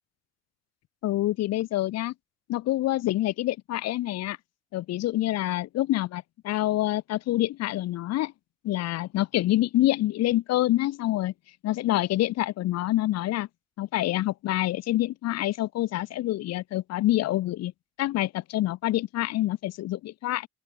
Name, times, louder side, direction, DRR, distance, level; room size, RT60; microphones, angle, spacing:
voice 1, 1.0-2.1 2.5-4.4 4.7-8.3 8.6-11.3 11.6-13.5 13.8-17.7 18.0-20.5, left 15 dB, 60° left, 0.4 m, -26 dB
open air
cardioid pair, 90°, 30 cm